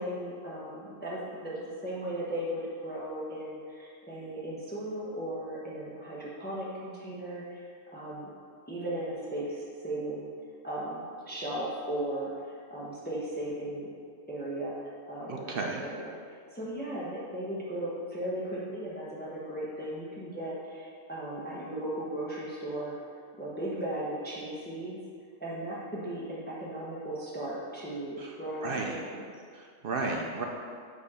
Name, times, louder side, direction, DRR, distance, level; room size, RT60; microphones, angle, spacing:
voice 1, 0.0-8.3 8.7-10.3 10.6-13.9 14.3-16.1 16.5-22.9 23.4-25.0 25.4-29.2, right 1 dB, 10° left, -7 dB, 1.0 m, -36 dB
voice 2, 15.3-15.8 28.6-29.0 29.6-30.4, right 3 dB, 55° right, 1 dB, 0.7 m, -33 dB
5.7 x 4.9 x 4.9 m, 2.1 s
omnidirectional pair, 1.3 m